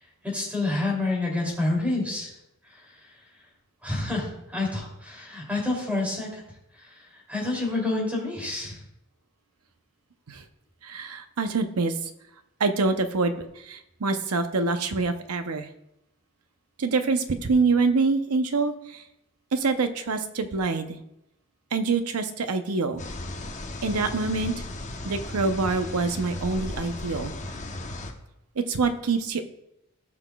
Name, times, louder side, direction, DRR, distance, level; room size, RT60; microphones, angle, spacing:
voice 1, 0.2-2.3 3.8-6.4 6.8-7.0 7.3-8.8, left 2 dB, 5° right, -2 dB, 2.8 m, -28 dB
voice 2, 10.8-11.9 12.6-15.7 16.8-19.0 19.5-21.0 21.7-23.0 23.8-24.5 25.0-27.3 28.6-29.4, right 4 dB, 85° right, 8 dB, 0.7 m, -25 dB
sound 1, 23.0-28.1, left 2 dB, 35° left, 0.9 m, -36 dB
17.5 x 5.9 x 2.3 m, 0.84 s
head